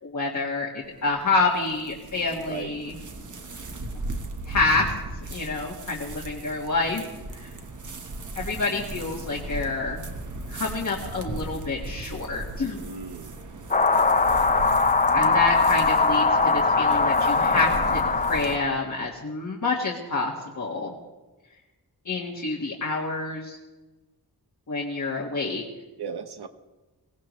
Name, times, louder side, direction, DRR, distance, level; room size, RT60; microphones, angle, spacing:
voice 1, 0.0-2.9 4.4-4.9 5.3-7.0 7.3-7.5 8.3-10.0 10.5-12.8 15.1-20.9 22.0-23.6 24.7-25.6, left 3 dB, 50° left, -2 dB, 1.7 m, -28 dB
sound 1, 0.8-18.6, right 2 dB, 50° right, 1.3 m, -37 dB
voice 2, 12.7-13.4 26.0-26.5, right 6 dB, 85° right, 9 dB, 1.1 m, -36 dB
sound 2, 13.7-18.8, left 4 dB, 20° left, 0.5 m, -21 dB
21.5 x 17.5 x 3.2 m, 1.2 s
wide cardioid pair, 155°, 38 cm